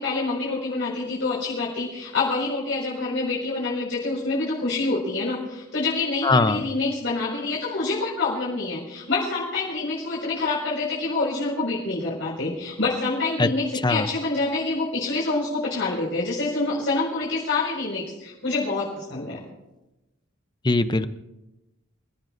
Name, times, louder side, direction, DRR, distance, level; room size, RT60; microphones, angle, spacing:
voice 1, 0.0-19.4, left 3 dB, 65° left, -7 dB, 5.4 m, -26 dB
voice 2, 6.2-6.6 13.4-13.5 13.8-14.1 20.6-21.1, left 3 dB, 20° left, 12 dB, 0.6 m, -20 dB
28.5 x 15.5 x 2.6 m, 1.0 s
head